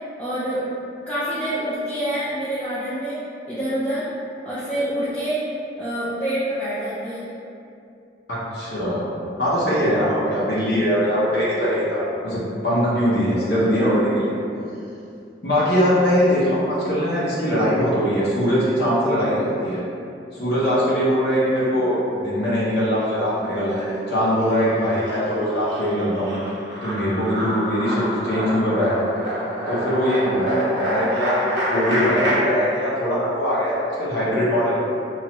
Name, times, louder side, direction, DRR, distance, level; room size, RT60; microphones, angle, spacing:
voice 1, 0.2-0.7 1.1-4.1 4.4-5.5 5.8-7.2, right 1 dB, 5° left, -12 dB, 0.4 m, -26 dB
voice 2, 8.3-14.3 15.4-19.8 20.3-26.3 26.8-28.9 29.7-34.8, equal, 60° left, -8 dB, 0.6 m, -21 dB
sound 1, 22.4-23.2 23.5-32.3, equal, 80° right, 0.8 m, -28 dB
3.0 x 2.3 x 2.9 m, 2.6 s
head